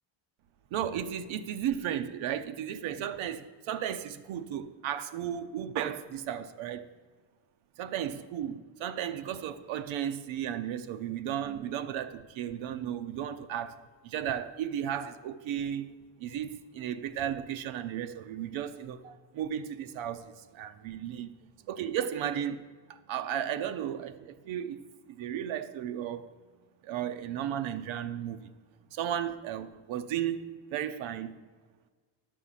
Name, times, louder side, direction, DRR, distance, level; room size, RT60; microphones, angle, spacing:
voice 1, 0.7-6.9 7.8-13.8 14.0-21.3 21.7-22.6 22.9-26.3 26.8-28.5 28.9-31.4, right 10 dB, 80° right, 0.7 m, -34 dB
11.0 x 6.6 x 5.7 m
cardioid pair, 155°, 46 cm